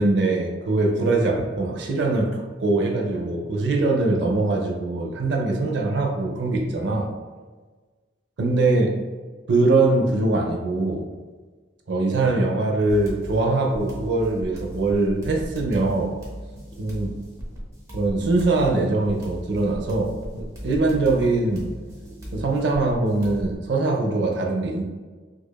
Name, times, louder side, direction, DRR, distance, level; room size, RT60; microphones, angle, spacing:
voice 1, 0.0-7.1 8.4-8.9 9.5-11.1 11.9-16.1 16.8-17.1 17.9-21.7 22.3-24.8, right 2 dB, 60° right, 1 dB, 0.5 m, -22 dB
sound 1, 12.9-23.6, equal, 15° right, 0.6 m, -37 dB
4.7 x 2.3 x 2.2 m, 1.4 s
head